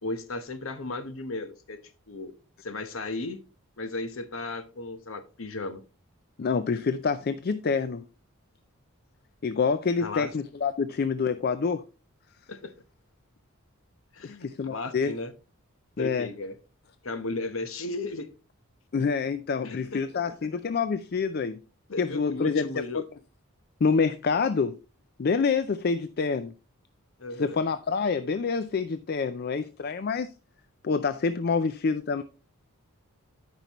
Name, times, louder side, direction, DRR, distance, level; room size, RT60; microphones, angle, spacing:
voice 1, 0.0-1.8 2.1-2.3 2.6-3.4 3.8-5.8 10.0-10.3 12.5-12.7 14.1-15.3 16.0-16.6 17.0-18.3 19.6-20.3 21.9-23.0 27.2-27.6, left 2 dB, 65° left, 1.0 m, -35 dB
voice 2, 6.4-8.0 9.4-11.8 14.2-15.1 16.0-16.3 18.9-21.6 22.0-22.7 22.9-23.0 23.8-24.8 25.2-26.5 27.4-30.3 30.8-32.2, left 5 dB, 45° left, 0.4 m, -27 dB
13.5 x 5.3 x 3.0 m
head